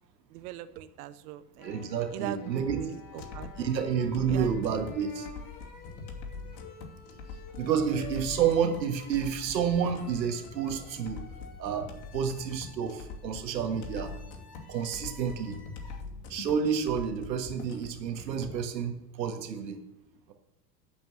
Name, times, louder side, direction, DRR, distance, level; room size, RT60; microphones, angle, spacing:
voice 1, 0.3-1.7 2.1-3.7 4.3-4.5, right 13 dB, 60° right, 12 dB, 0.8 m, -40 dB
sound 1, 1.6-16.0, left 5 dB, 40° left, 2.6 m, -50 dB
voice 2, 1.6-2.8 3.6-5.3 5.8-5.9 7.6-11.2 11.6-14.1 14.7-15.6 16.3-19.8, right 7 dB, 80° right, 5 dB, 1.8 m, -30 dB
sound 2, 3.2-18.6, left 4 dB, 60° left, 2.7 m, -43 dB
11.5 x 5.2 x 7.8 m, 0.89 s
hypercardioid pair, 85°, 50 cm